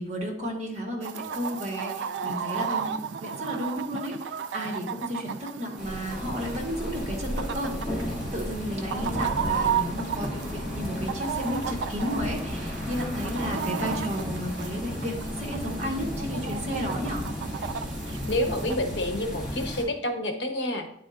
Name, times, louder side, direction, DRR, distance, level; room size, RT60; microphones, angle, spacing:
voice 1, 0.0-17.2, equal, 40° right, -1 dB, 1.5 m, -33 dB
Chicken rooster, 1.0-18.8, right 7 dB, 90° right, 0.4 m, -34 dB
sound 1, 5.8-19.8, equal, 5° right, 2.1 m, -34 dB
voice 2, 18.3-20.9, left 1 dB, 75° left, 5 dB, 0.9 m, -28 dB
9.4 x 4.2 x 2.5 m, 0.72 s
head